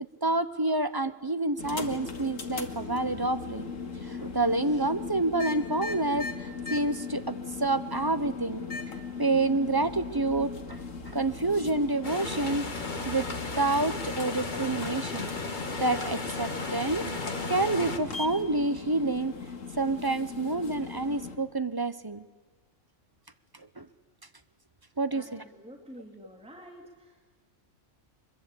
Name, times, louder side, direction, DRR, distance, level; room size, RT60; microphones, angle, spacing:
voice 1, 0.2-3.7 4.0-8.6 9.2-12.7 13.0-13.3 13.6-15.3 15.8-17.1 17.5-19.3 19.8-22.2 23.5-23.9 25.0-25.4, right 2 dB, 20° right, 12 dB, 0.7 m, -28 dB
sound 1, 1.6-21.4, left 4 dB, 85° left, 2.2 m, -39 dB
sound 2, 12.0-18.0, left 3 dB, 40° left, 1.7 m, -35 dB
voice 2, 25.1-27.3, equal, 5° right, 1 dB, 2.5 m, -49 dB
24.0 x 22.0 x 8.4 m, 1.4 s
omnidirectional pair, 1.3 m